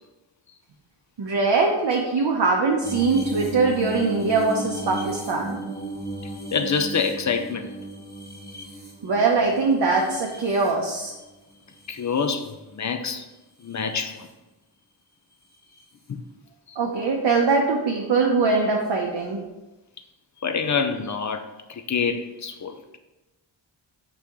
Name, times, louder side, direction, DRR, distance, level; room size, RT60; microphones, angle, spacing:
voice 1, 1.2-5.6 9.0-11.1 16.8-19.4, right 4 dB, 55° right, -1 dB, 0.7 m, -22 dB
sound 1, 2.8-11.2 11.7-12.5 13.7-14.0 15.8-15.9, right 1 dB, 20° left, 1.1 m, -35 dB
voice 2, 6.2-7.7 10.1-10.2 11.9-13.3 13.6-14.3 16.1-16.2 16.7-16.8 20.4-21.4 21.7-22.7, left 5 dB, 40° left, 7 dB, 0.4 m, -26 dB
5.1 x 2.9 x 3.5 m, 1.0 s
wide cardioid pair, 65°, 48 cm